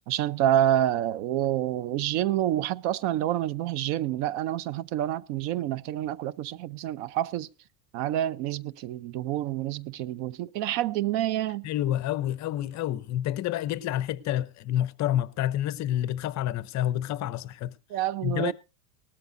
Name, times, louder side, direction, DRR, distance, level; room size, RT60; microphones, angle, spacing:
voice 1, 0.0-7.5 7.9-11.7 17.9-18.5, right 12 dB, 55° right, 0.6 m, -28 dB
voice 2, 11.6-17.7 18.2-18.5, left 12 dB, 35° left, 0.7 m, -28 dB
19.0 x 13.0 x 2.6 m
supercardioid pair, 135°, 49 cm